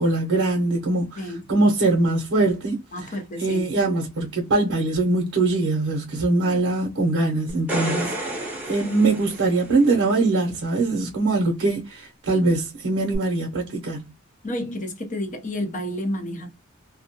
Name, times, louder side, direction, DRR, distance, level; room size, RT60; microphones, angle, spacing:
voice 1, 0.0-1.2 1.5-2.8 3.4-8.4 8.7-14.0, right 2 dB, 60° right, 0.7 m, -22 dB
voice 2, 2.9-3.7 14.4-16.5, left 1 dB, 40° left, 0.7 m, -31 dB
sound 1, 7.5-10.1 13.1-13.2, right 1 dB, 10° right, 0.7 m, -31 dB
2.3 x 2.1 x 2.8 m
head